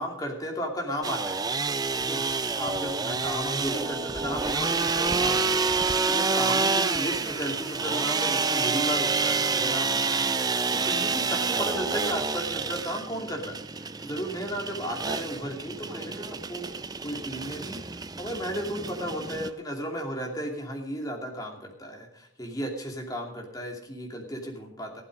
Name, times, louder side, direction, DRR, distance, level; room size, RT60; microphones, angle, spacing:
voice 1, 0.0-1.4 2.0-2.2 2.6-13.6 14.0-16.8 17.0-25.0, equal, 20° left, 1 dB, 2.7 m, -34 dB
sound 1, 1.0-19.5, right 4 dB, 20° right, 0.5 m, -28 dB
15.0 x 12.0 x 5.3 m, 0.71 s
head